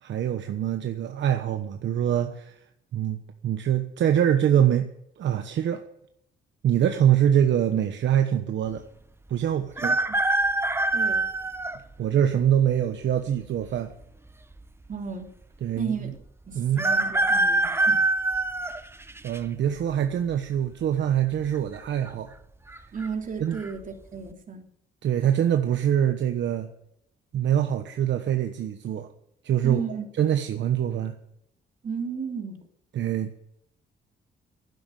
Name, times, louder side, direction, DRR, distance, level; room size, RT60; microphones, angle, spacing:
voice 1, 0.0-2.6 2.9-3.2 3.4-4.9 5.2-5.8 6.6-8.8 9.3-9.9 12.0-13.9 15.6-16.1 16.5-16.8 19.2-22.3 23.4-23.6 25.0-26.7 27.3-29.1 29.4-29.8 30.2-31.2 32.9-33.5, right 10 dB, 65° right, 7 dB, 1.2 m, -24 dB
sound 1, 9.8-11.8 12.5-12.6 13.7-14.3 14.6-14.7 14.9-15.0 16.8-19.4 19.9-20.3 21.4-21.8 22.1-22.2 22.7-23.1 23.5-23.7, right 2 dB, 10° right, 1.0 m, -24 dB
voice 2, 9.8-10.2 10.9-11.2 14.9-15.3 15.8-16.2 16.5-18.0 22.9-24.6 29.6-30.1 31.8-32.6, right 5 dB, 40° right, 3 dB, 3.2 m, -34 dB
12.0 x 10.5 x 8.9 m, 0.76 s
cardioid pair, 90°, 20 cm